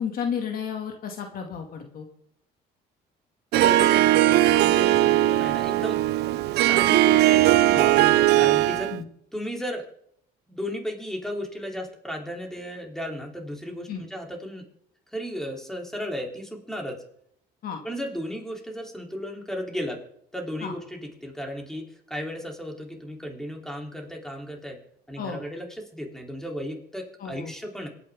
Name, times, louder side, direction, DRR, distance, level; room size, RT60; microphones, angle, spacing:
voice 1, 0.0-2.1 8.9-9.0 13.9-14.0 17.6-17.8 20.6-20.7 25.2-25.4 27.2-27.5, left 7 dB, 60° left, 3 dB, 2.4 m, -32 dB
voice 2, 3.5-6.0 6.5-8.9 9.3-9.8 10.5-14.6 15.1-17.0 17.8-20.0 20.3-24.8 25.1-27.9, equal, 5° left, 1 dB, 3.5 m, -34 dB
Harp, 3.5-9.0, right 15 dB, 80° right, 0.7 m, -19 dB
26.0 x 9.5 x 3.8 m, 0.71 s
cardioid pair, 110°, 17 cm